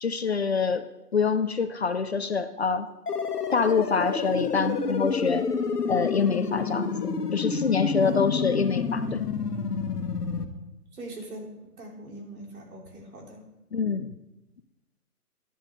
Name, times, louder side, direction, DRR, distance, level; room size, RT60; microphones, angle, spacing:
voice 1, 0.0-0.8 1.1-2.9 3.5-5.5 5.9-9.2 13.7-14.1, left 5 dB, 45° left, 11 dB, 0.5 m, -26 dB
sound 1, 3.1-10.5, left 5 dB, 75° left, 1.4 m, -29 dB
voice 2, 10.9-13.4, right 2 dB, 65° right, -1 dB, 3.5 m, -41 dB
11.0 x 10.0 x 3.7 m, 0.95 s
hypercardioid pair, 160°, 47 cm